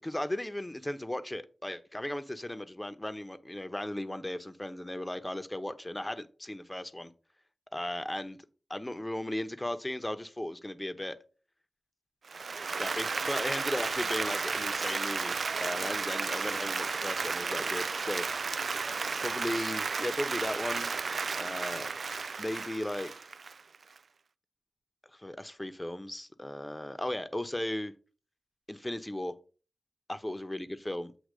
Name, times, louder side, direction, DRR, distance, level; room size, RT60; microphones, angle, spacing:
voice 1, 0.0-7.1 7.7-8.4 8.7-11.2 12.8-18.3 19.2-21.0 21.3-21.9 22.4-23.1 25.1-27.9 28.7-29.3 30.1-31.1, left 1 dB, 20° left, 0.9 m, -36 dB
Applause, 12.2-24.0, right 4 dB, 80° right, 0.3 m, -33 dB
8.2 x 2.9 x 6.2 m
cardioid pair, 50°, 0 cm